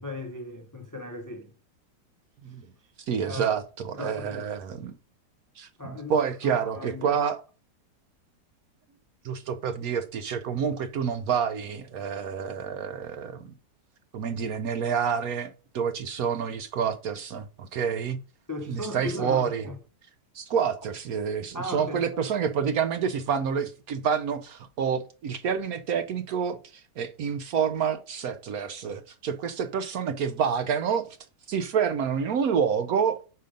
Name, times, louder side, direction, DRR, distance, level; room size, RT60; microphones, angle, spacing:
voice 1, 0.0-1.5 3.2-3.6 3.9-4.5 5.8-7.1 18.5-19.8 21.5-22.2, left 1 dB, 25° left, 0.4 m, -37 dB
voice 2, 3.1-4.9 5.6-7.4 9.2-13.5 14.1-15.5 15.7-18.2 18.7-19.6 20.3-31.1 31.5-33.2, right 7 dB, 65° right, 1.0 m, -28 dB
6.7 x 5.1 x 5.1 m
omnidirectional pair, 2.0 m